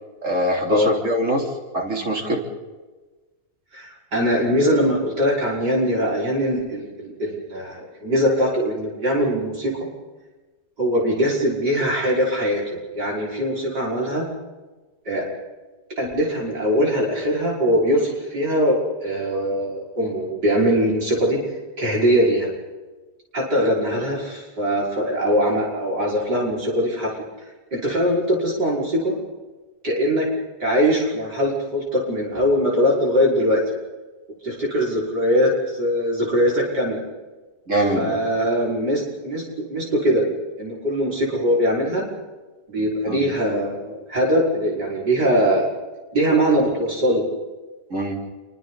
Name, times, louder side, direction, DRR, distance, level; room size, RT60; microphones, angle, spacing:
voice 1, 0.2-1.4 1.7-2.4 37.7-38.2 43.0-43.2 47.9-48.2, right 1 dB, 45° right, 0 dB, 4.1 m, -23 dB
voice 2, 3.7-9.7 10.8-14.3 15.1-15.2 16.0-21.4 21.8-22.5 23.3-27.1 27.7-29.2 29.8-30.3 30.6-33.6 34.4-37.0 37.7-39.4 39.7-40.2 40.6-42.1 42.7-45.7 46.1-47.2, equal, 70° right, -4 dB, 6.2 m, -21 dB
29.0 x 24.5 x 4.2 m, 1.2 s
omnidirectional pair, 1.8 m